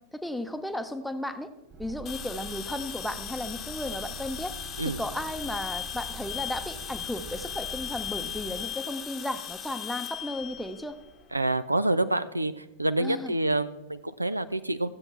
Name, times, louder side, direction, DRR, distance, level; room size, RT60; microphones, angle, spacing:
voice 1, 0.1-1.5 1.8-4.5 4.8-11.0 13.0-13.3, left 1 dB, 5° left, 9 dB, 0.7 m, -34 dB
sound 1, 1.7-8.7, right 7 dB, 25° right, 1.6 m, -44 dB
sound 2, 2.1-11.3, left 9 dB, 30° left, 1.0 m, -38 dB
voice 2, 11.3-14.9, right 2 dB, 85° right, 14 dB, 0.4 m, -27 dB
14.5 x 7.9 x 4.4 m, 1.0 s
figure-of-eight pair, 90°, 0 cm